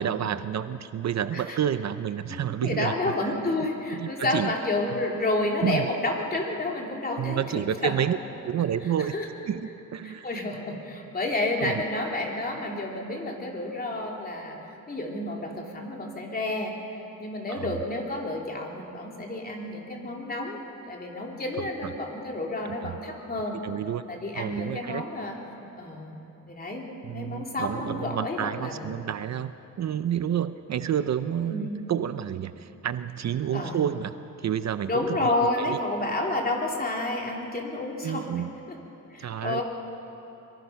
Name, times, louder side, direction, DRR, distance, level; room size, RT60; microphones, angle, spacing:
voice 1, 0.0-3.0 3.2-3.3 4.0-4.5 5.6-5.9 7.2-8.2 8.5-9.1 9.5-10.3 11.6-11.8 17.5-17.7 22.8-23.0 23.6-24.0 24.4-25.0 27.0-29.5 29.8-35.3 35.7-35.8 38.0-38.5 39.2-39.6, right 9 dB, 55° right, 12 dB, 0.6 m, -29 dB
voice 2, 2.3-7.4 7.8-8.0 9.0-9.3 10.0-14.6 14.9-16.7 17.2-20.6 20.9-23.6 24.1-25.4 25.8-26.1 26.5-26.9 27.1-29.0 31.4-31.7 33.5-33.8 34.9-38.4 38.7-38.8 39.1-39.6, left 2 dB, 30° left, 0 dB, 3.0 m, -30 dB
24.0 x 23.0 x 5.8 m, 3.0 s
wide cardioid pair, 140°, 32 cm